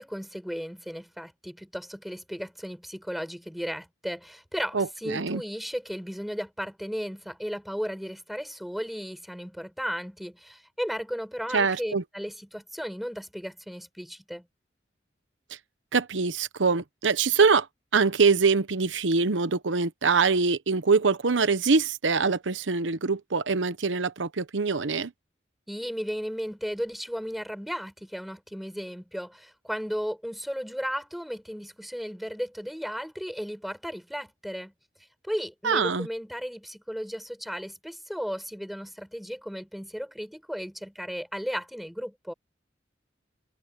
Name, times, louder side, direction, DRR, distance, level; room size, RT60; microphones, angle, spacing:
voice 1, 0.0-14.5 25.7-34.7 35.2-42.3, equal, ahead, 5.2 m, -35 dB
voice 2, 4.7-5.4 11.5-12.0 15.9-17.7 17.9-25.1 35.6-36.1, right 4 dB, 90° right, 0.9 m, -24 dB
head